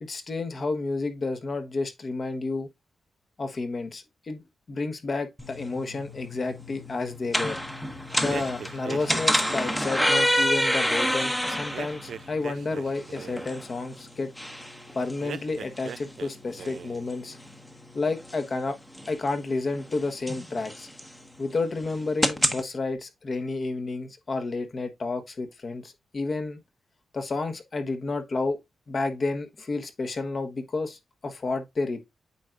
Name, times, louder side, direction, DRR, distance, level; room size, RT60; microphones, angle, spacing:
voice 1, 0.0-2.7 3.4-4.4 4.7-7.6 7.9-14.3 14.9-17.4 17.9-18.8 19.1-20.9 21.4-26.6 27.1-28.6 28.9-32.0, left 3 dB, 40° left, 1.1 m, -31 dB
sound 1, 5.4-22.6, equal, 5° left, 0.9 m, -30 dB
sound 2, 8.2-10.1 11.7-13.6 15.2-16.3 16.6-17.1, right 7 dB, 70° right, 0.4 m, -40 dB
8.4 x 4.6 x 2.5 m
wide cardioid pair, 110°, 0 cm